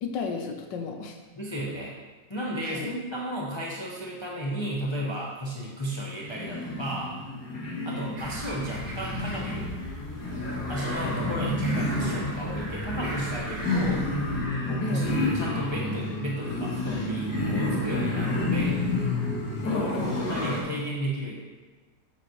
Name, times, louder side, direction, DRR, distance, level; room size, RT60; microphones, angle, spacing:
voice 1, 0.0-1.2 2.6-2.9 14.8-15.2 19.6-20.3, left 4 dB, 80° left, 4 dB, 1.5 m, -33 dB
voice 2, 1.4-2.0 2.3-7.1 7.8-9.7 10.7-14.1 14.7-15.0 15.3-18.8 20.3-21.4, equal, 30° left, -4 dB, 0.5 m, -33 dB
sound 1, 6.0-20.6, left 2 dB, 55° left, 1.8 m, -30 dB
sound 2, 8.2-14.4, right 1 dB, 60° right, 1.9 m, -38 dB
7.1 x 7.0 x 3.1 m, 1.3 s
omnidirectional pair, 1.9 m